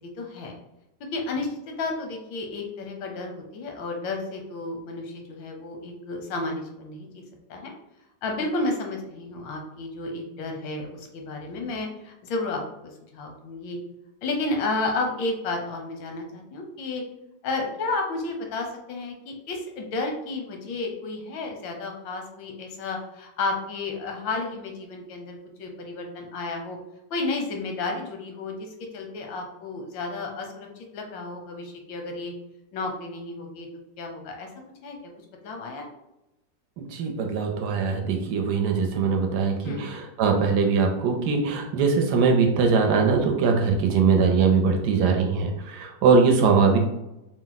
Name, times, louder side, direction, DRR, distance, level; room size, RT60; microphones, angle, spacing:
voice 1, 0.2-0.6 1.1-7.2 7.5-7.7 8.2-13.8 14.2-17.0 17.4-26.8 27.1-30.7 30.9-32.3 32.7-33.7 34.0-34.5 34.8-35.0 35.4-35.8 39.6-39.9, left 3 dB, 85° left, 2 dB, 1.5 m, -32 dB
voice 2, 36.9-46.8, right 5 dB, 70° right, 3 dB, 1.1 m, -21 dB
4.4 x 2.1 x 3.9 m, 0.92 s
omnidirectional pair, 2.0 m